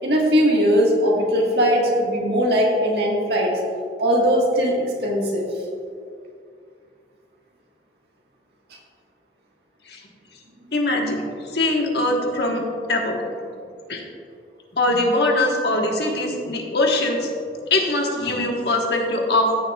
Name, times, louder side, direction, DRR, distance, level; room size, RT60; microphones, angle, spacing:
voice 1, 0.0-3.6 4.0-5.5, equal, 65° right, -2 dB, 1.6 m, -19 dB
voice 2, 10.7-12.6 12.9-13.2 13.9-14.0 14.8-17.3 17.7-19.5, left 2 dB, 70° left, 1 dB, 1.3 m, -22 dB
15.0 x 6.9 x 2.3 m, 2.3 s
head